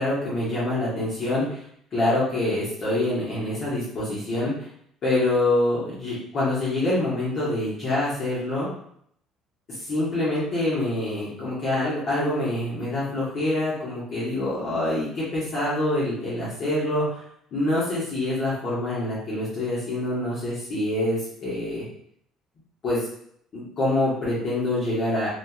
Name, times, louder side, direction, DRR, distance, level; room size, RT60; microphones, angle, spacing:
voice 1, 0.0-1.6 1.9-4.5 5.0-8.7 9.7-17.2 17.5-21.8 22.8-23.1 23.5-25.3, left 1 dB, 45° left, -9 dB, 1.1 m, -25 dB
2.6 x 2.3 x 2.3 m, 0.68 s
cardioid pair, 115°, 0 cm